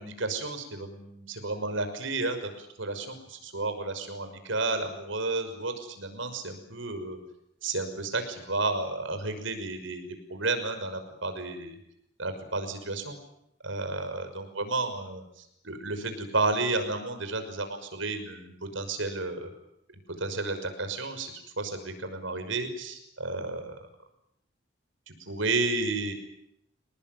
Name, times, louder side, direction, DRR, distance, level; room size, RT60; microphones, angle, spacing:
voice 1, 0.0-7.2 7.6-10.0 10.3-11.8 12.2-13.2 13.6-19.5 20.2-23.8 25.2-26.1, right 3 dB, 85° right, 8 dB, 6.0 m, -32 dB
27.0 x 19.5 x 9.4 m, 0.77 s
head